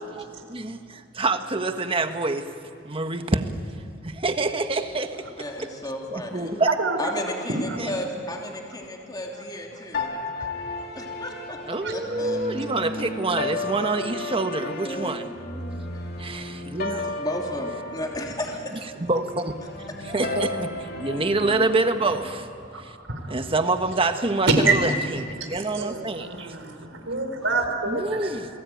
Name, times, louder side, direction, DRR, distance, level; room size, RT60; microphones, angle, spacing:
voice 1, 0.1-2.5 2.8-3.4 4.0-5.2 6.1-6.7 7.8-7.9 11.6-15.3 16.2-17.2 19.0-22.5 22.8-23.0 23.3-26.6 27.9-28.5, right 2 dB, 30° right, 1.5 m, -26 dB
voice 2, 5.4-6.6 7.0-10.7 10.9-11.6 11.9-12.4 14.8-16.1 17.0-18.9, left 1 dB, 20° left, 3.0 m, -34 dB
voice 3, 6.8-7.1 7.6-7.8 9.3-9.4 9.9-10.0 11.8-11.9 22.7-23.4 24.5-24.8 25.4-28.3, right 3 dB, 75° right, 4.5 m, -26 dB
sound 1, 9.9-22.2, left 2 dB, 55° left, 2.7 m, -34 dB
30.0 x 21.0 x 9.3 m
head